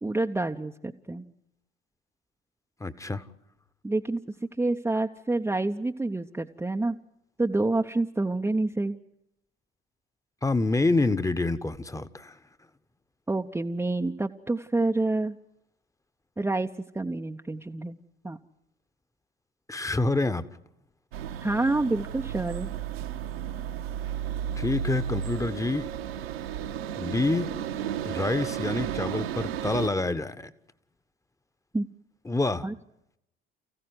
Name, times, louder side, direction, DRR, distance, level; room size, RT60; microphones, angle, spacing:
voice 1, 0.0-1.2 3.8-4.2 4.6-7.0 7.4-9.0 13.3-15.3 16.4-16.7 16.9-18.0 18.2-18.4 21.4-22.7 31.7-31.8 32.6-32.7, right 2 dB, 5° right, 3 dB, 0.9 m, -28 dB
voice 2, 2.8-3.2 10.4-12.4 19.7-20.4 24.6-25.9 27.0-27.5 28.0-30.5 32.2-32.6, left 2 dB, 10° left, 13 dB, 1.3 m, -27 dB
sound 1, 21.1-29.9, right 9 dB, 70° right, 1.7 m, -33 dB
29.5 x 15.5 x 9.7 m, 0.82 s
figure-of-eight pair, 65°, 31 cm